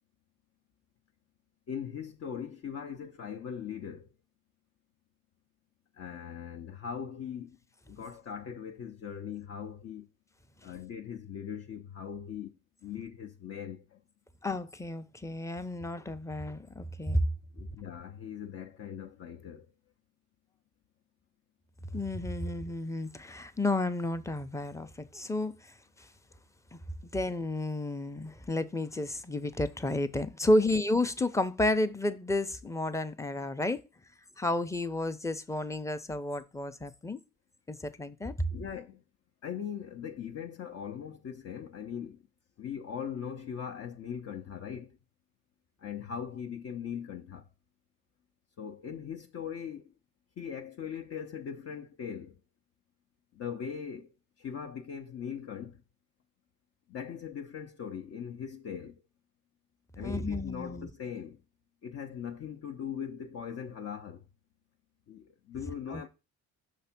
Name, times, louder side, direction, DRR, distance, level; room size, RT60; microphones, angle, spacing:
voice 1, 1.7-4.1 6.0-7.6 7.9-10.1 10.6-12.5 12.8-14.0 17.6-19.7 38.5-39.0 39.4-42.2 42.6-45.0 45.8-47.5 48.6-49.9 50.4-52.3 53.3-54.1 54.4-55.8 56.9-59.0 60.0-61.4 61.8-64.2 65.1-66.1, left 8 dB, 55° left, 0.6 m, -40 dB
voice 2, 14.4-17.3 21.9-26.1 26.7-26.8 27.1-33.8 34.4-37.2 37.7-38.5 60.0-60.9 65.9-66.1, left 1 dB, 10° left, 0.5 m, -31 dB
6.0 x 3.3 x 5.8 m
cardioid pair, 90°, 30 cm